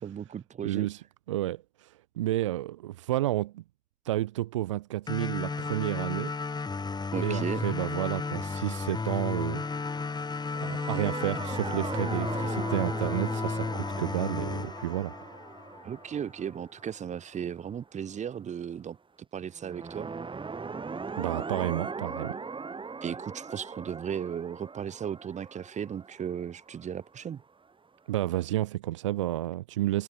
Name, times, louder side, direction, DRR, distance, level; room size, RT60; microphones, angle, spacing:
voice 1, 0.0-0.9 7.1-7.6 15.8-19.0 19.3-20.1 23.0-27.4, right 8 dB, 50° right, 5.3 m, -36 dB
voice 2, 0.6-3.6 4.0-6.3 7.2-9.6 10.6-15.1 21.2-22.4 28.1-30.0, right 15 dB, 75° right, 2.4 m, -31 dB
sound 1, 5.1-16.0, left 4 dB, 25° left, 1.7 m, -33 dB
sound 2, 10.4-17.7 19.6-27.3, right 4 dB, 35° right, 6.1 m, -39 dB
figure-of-eight pair, 40°, 16 cm